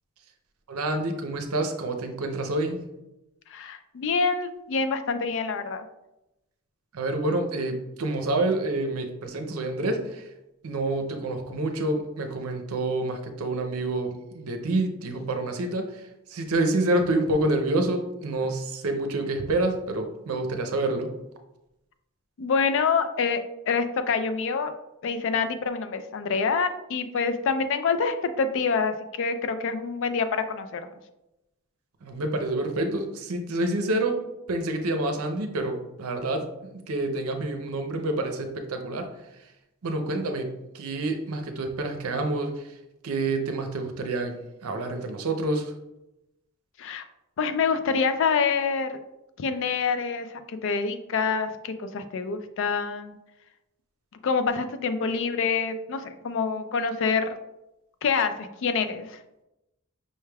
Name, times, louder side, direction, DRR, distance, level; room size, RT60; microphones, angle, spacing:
voice 1, 0.7-2.8 6.9-10.2 10.6-16.0 16.3-21.1 32.0-36.5 36.9-39.1 39.8-42.6 43.0-45.7, right 2 dB, 80° right, 6 dB, 0.6 m, -28 dB
voice 2, 3.5-5.8 22.4-24.7 25.0-30.8 46.8-47.0 47.4-49.0 49.4-50.3 50.6-53.2 54.2-57.4 58.0-59.1, left 5 dB, 60° left, 9 dB, 0.3 m, -26 dB
5.4 x 3.3 x 2.3 m, 0.92 s
head